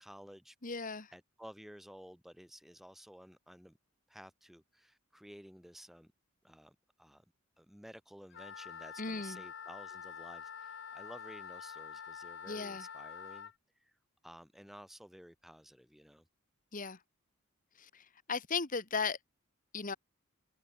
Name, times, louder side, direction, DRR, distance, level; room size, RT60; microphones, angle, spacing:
voice 1, 0.0-0.6 1.1-3.8 4.1-6.1 6.4-7.2 7.6-14.0 14.2-16.2, equal, ahead, 0.8 m, -54 dB
voice 2, 0.6-1.1 9.0-9.4 12.5-12.9 16.7-17.0 17.8-19.2 19.7-19.9, left 4 dB, 40° left, 1.6 m, -37 dB
Wind instrument woodwind instrument, 8.3-13.5, left 7 dB, 55° left, 1.1 m, -47 dB
head